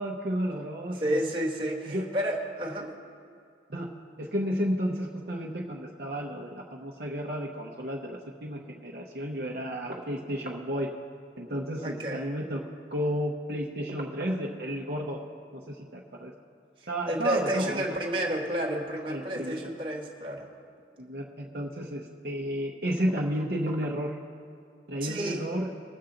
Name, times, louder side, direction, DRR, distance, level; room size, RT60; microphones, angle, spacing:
voice 1, 0.0-1.2 1.9-2.1 3.7-3.9 4.2-10.9 11.4-12.6 12.9-15.2 15.5-16.3 16.9-17.8 19.1-19.6 21.0-24.2 24.9-25.7, equal, 55° right, -1 dB, 0.8 m, -32 dB
voice 2, 0.9-2.9 11.8-12.2 16.8-20.5 25.0-25.4, right 1 dB, 25° right, -1 dB, 1.3 m, -31 dB
21.0 x 7.2 x 3.9 m, 2.3 s
head